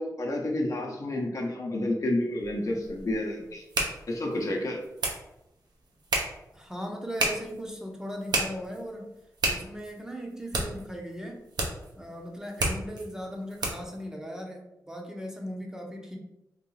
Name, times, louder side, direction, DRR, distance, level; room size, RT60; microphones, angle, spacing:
voice 1, 0.0-3.6 4.1-4.8, left 1 dB, 50° left, 0 dB, 0.8 m, -30 dB
sound 1, 2.4-14.0, right 2 dB, 70° right, 0.8 m, -34 dB
voice 2, 6.5-9.1 9.4-11.4 12.0-16.2, equal, 10° right, 0 dB, 0.7 m, -38 dB
3.7 x 2.6 x 3.1 m, 0.90 s
cardioid pair, 65°, 7 cm